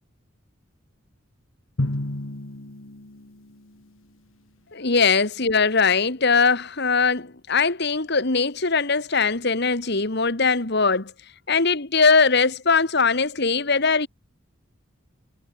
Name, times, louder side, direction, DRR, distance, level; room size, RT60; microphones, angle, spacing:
Drum, 1.8-4.0, left 1 dB, 80° left, 2.1 m, -31 dB
voice 1, 4.7-11.1 11.5-14.1, left 4 dB, 55° left, 1.9 m, -21 dB
head